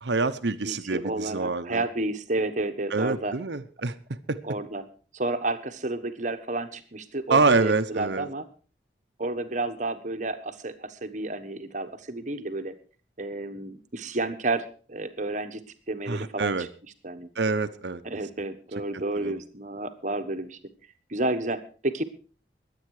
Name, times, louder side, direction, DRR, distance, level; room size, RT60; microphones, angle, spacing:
voice 1, 0.0-1.8 2.9-3.9 4.3-4.4 7.3-8.3 16.1-16.7 17.4-18.0 18.9-19.4, right 3 dB, 75° right, 10 dB, 0.9 m, -26 dB
voice 2, 0.6-3.3 4.4-4.8 5.1-8.4 9.2-12.7 13.2-15.6 15.9-16.7 17.0-17.3 18.0-20.6 21.1-22.0, right 2 dB, 45° right, 9 dB, 1.3 m, -31 dB
22.5 x 8.8 x 4.8 m, 0.40 s
head